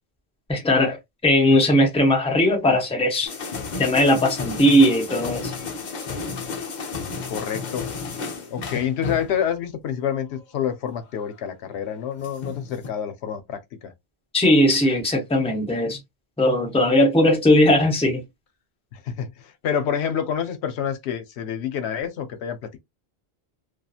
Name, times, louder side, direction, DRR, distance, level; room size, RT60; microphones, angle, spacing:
voice 1, 0.5-3.3 3.8-5.5 14.3-16.0 16.4-18.2, left 1 dB, 5° left, 0.6 m, -18 dB
sound 1, 3.2-9.4 10.1-10.7 11.7-12.9, left 4 dB, 50° left, 0.7 m, -32 dB
voice 2, 7.3-8.1 8.5-13.9 18.9-22.8, left 8 dB, 85° left, 0.9 m, -28 dB
2.8 x 2.3 x 2.3 m
omnidirectional pair, 1.1 m